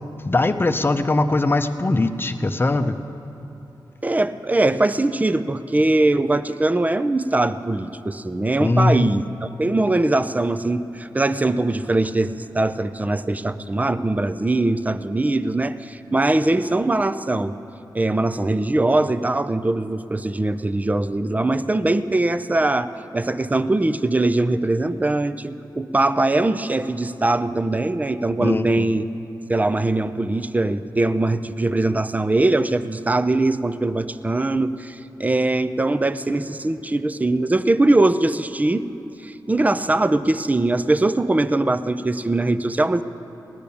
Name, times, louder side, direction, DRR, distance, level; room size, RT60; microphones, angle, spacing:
voice 1, 0.3-3.0 8.6-9.1 28.4-28.9, left 2 dB, 30° left, 9 dB, 0.8 m, -20 dB
voice 2, 4.0-17.6 17.9-22.9 23.1-29.0 29.5-38.9 39.2-43.0, right 2 dB, 20° right, 12 dB, 0.6 m, -21 dB
17.0 x 10.5 x 7.0 m, 2.9 s
cardioid pair, 70°, 8 cm